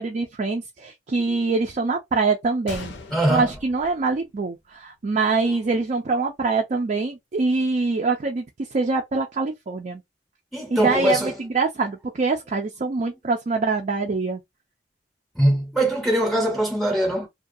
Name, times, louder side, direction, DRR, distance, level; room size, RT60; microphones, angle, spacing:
voice 1, 0.0-2.9 3.3-8.5 8.7-10.0 10.7-14.4, right 3 dB, 45° right, 0.4 m, -24 dB
Gunshot gunfire, 2.7-4.7 5.0-5.1 5.8-6.0, left 3 dB, 85° left, 0.6 m, -40 dB
voice 2, 3.1-3.5 10.5-11.3 15.3-17.3, right 1 dB, ahead, 0.7 m, -22 dB
2.3 x 2.2 x 2.6 m
head